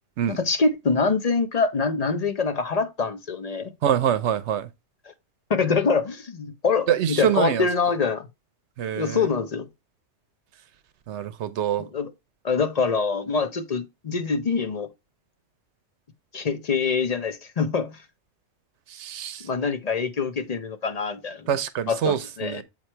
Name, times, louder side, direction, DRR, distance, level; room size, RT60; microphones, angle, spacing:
voice 1, 0.3-3.7 5.5-8.3 9.0-9.7 11.8-12.1 12.4-14.9 16.3-18.0 19.4-21.5 21.9-22.6, left 5 dB, 40° left, 0.7 m, -25 dB
voice 2, 3.8-4.7 6.9-7.7 8.8-9.2 11.1-11.9 19.0-19.4 21.5-22.6, right 9 dB, 80° right, 0.9 m, -25 dB
7.4 x 3.1 x 4.3 m
omnidirectional pair, 1.2 m